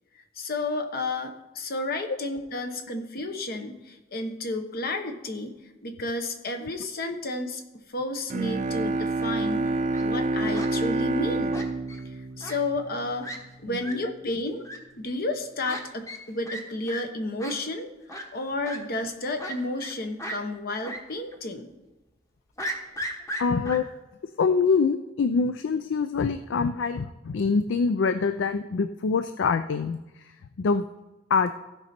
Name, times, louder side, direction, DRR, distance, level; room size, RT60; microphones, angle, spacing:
voice 1, 0.3-5.5 5.8-9.7 10.0-11.6 12.0-13.3 13.6-14.6 15.0-17.9 18.3-21.7, left 2 dB, 55° left, 6 dB, 1.1 m, -31 dB
Bowed string instrument, 8.3-13.4, right 2 dB, 40° right, 0.5 m, -28 dB
Fowl, 9.7-10.1 10.5-10.7 11.5-12.0 12.4-12.6 12.9-13.0 13.2-13.4 13.8-13.9 14.6-14.8 15.6-15.8 16.1-16.2 16.5-16.6 16.9-17.0 17.4-17.5 18.1-18.2 18.6-18.8 19.4-19.9 20.2-20.4 20.8-21.0 21.3-21.4 22.6-23.8, equal, 15° left, 1.2 m, -35 dB
voice 2, 23.4-23.9 24.4-30.9 31.3-31.5, left 5 dB, 70° left, 11 dB, 0.4 m, -25 dB
15.5 x 5.3 x 4.4 m, 1.1 s
head